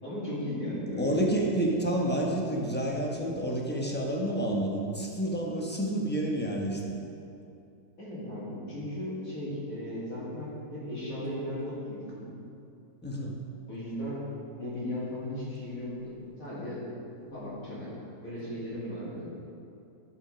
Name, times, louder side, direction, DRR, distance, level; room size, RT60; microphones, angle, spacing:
voice 1, 0.0-1.4 8.0-12.3 13.7-14.2 14.6-16.8 17.3-17.9 18.2-19.3, left 1 dB, 55° left, -9 dB, 3.0 m, -36 dB
voice 2, 1.0-7.0 13.0-13.4, right 1 dB, 10° left, -2 dB, 0.8 m, -29 dB
10.5 x 5.7 x 5.1 m, 2.7 s
omnidirectional pair, 1.7 m